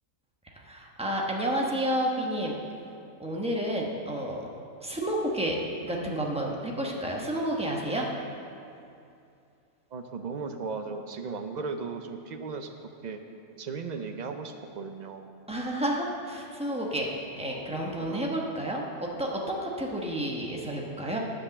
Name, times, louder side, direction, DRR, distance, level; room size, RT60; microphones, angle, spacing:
voice 1, 0.6-2.5 3.2-4.5 4.8-8.1 15.5-17.1 17.4-21.2, right 1 dB, 5° right, -2 dB, 1.0 m, -30 dB
voice 2, 9.9-12.7 13.0-13.2 13.6-15.3 18.0-18.3, right 4 dB, 50° right, 6 dB, 0.5 m, -36 dB
9.8 x 5.4 x 7.1 m, 2.6 s
omnidirectional pair, 1.3 m